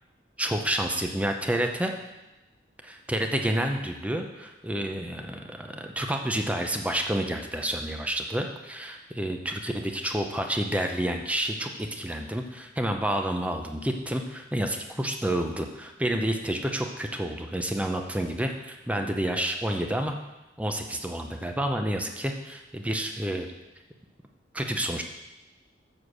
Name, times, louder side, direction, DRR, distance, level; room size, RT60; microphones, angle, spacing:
voice 1, 0.4-1.9 2.8-20.2 20.6-23.5 24.5-25.0, right 1 dB, 10° right, 4 dB, 0.6 m, -29 dB
7.5 x 6.5 x 6.2 m, 1.0 s
head